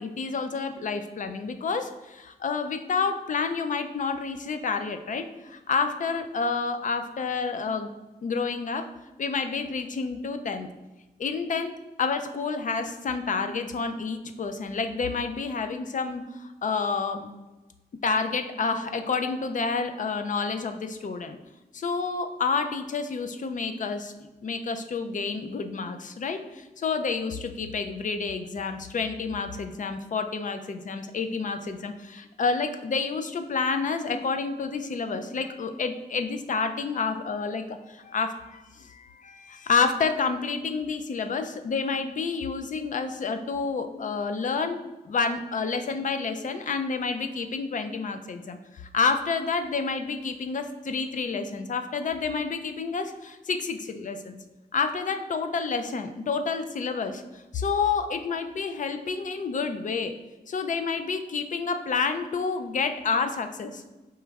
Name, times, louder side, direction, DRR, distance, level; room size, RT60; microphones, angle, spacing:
voice 1, 0.0-7.9 8.2-8.9 9.2-10.7 11.2-11.7 12.0-17.3 18.0-21.4 21.7-44.8 45.0-54.4 54.7-60.1 60.5-63.8, left 5 dB, 50° left, 7 dB, 0.4 m, -29 dB
4.6 x 3.1 x 3.4 m, 1.1 s
wide cardioid pair, 110°, 17 cm